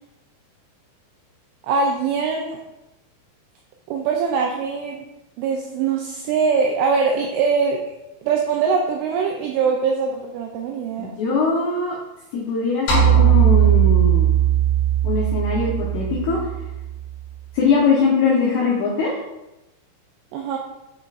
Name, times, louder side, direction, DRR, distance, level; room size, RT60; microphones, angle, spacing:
voice 1, 1.6-2.6 3.9-5.1 5.4-7.8 8.2-11.1 20.3-20.6, right 5 dB, 85° right, 1 dB, 2.7 m, -22 dB
voice 2, 11.0-12.0 12.3-14.3 15.0-16.4 17.5-19.1, left 4 dB, 85° left, -3 dB, 2.3 m, -21 dB
sound 1, 12.9-17.3, right 10 dB, 50° left, 3.6 m, -18 dB
8.6 x 5.1 x 2.5 m, 0.96 s
omnidirectional pair, 6.0 m